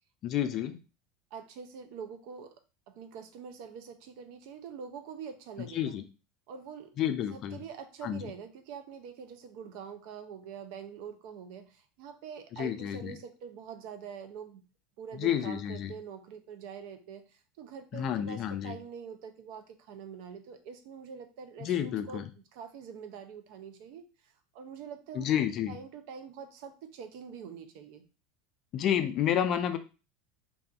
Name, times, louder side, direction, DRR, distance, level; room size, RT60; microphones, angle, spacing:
voice 1, 0.2-0.8 5.7-6.0 7.0-7.6 8.0-8.3 12.5-13.1 15.1-15.9 17.9-18.8 21.6-22.2 25.1-25.8 28.7-29.8, left 10 dB, 45° left, 9 dB, 0.3 m, -30 dB
voice 2, 1.3-2.6 2.9-6.0 6.5-7.0 7.3-14.6 15.0-22.2 22.5-28.0, right 7 dB, 65° right, 8 dB, 0.4 m, -45 dB
2.7 x 2.4 x 2.3 m, 0.33 s
hypercardioid pair, 85°, 0 cm